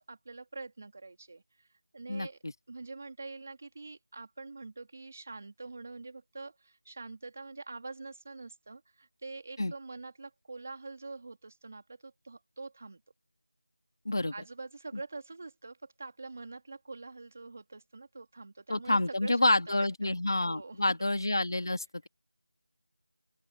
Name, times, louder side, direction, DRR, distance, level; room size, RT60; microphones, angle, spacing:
voice 1, 0.0-2.4 2.7-13.0 14.3-20.1 20.4-20.8, right 3 dB, 25° right, 2.8 m, -45 dB
voice 2, 2.1-2.5 9.6-9.7 14.1-14.3 18.7-22.1, left 2 dB, 50° left, 2.1 m, -28 dB
open air
figure-of-eight pair, 180°, 3 cm